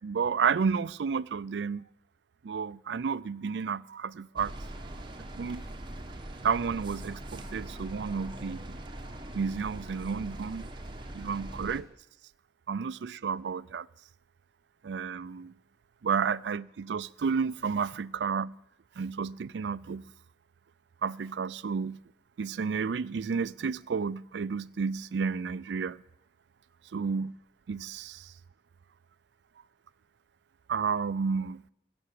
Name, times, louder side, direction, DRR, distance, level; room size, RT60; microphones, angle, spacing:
voice 1, 0.0-1.8 2.4-4.5 5.4-5.7 6.4-8.8 9.3-10.7 11.1-11.9 12.7-13.9 14.8-15.5 16.0-18.5 19.0-20.1 21.0-22.0 22.4-26.0 26.9-27.4 27.7-28.3 30.7-31.6, right 5 dB, 85° right, 0.4 m, -31 dB
sound 1, 4.4-11.8, right 1 dB, 25° right, 1.1 m, -42 dB
16.0 x 6.9 x 8.6 m
head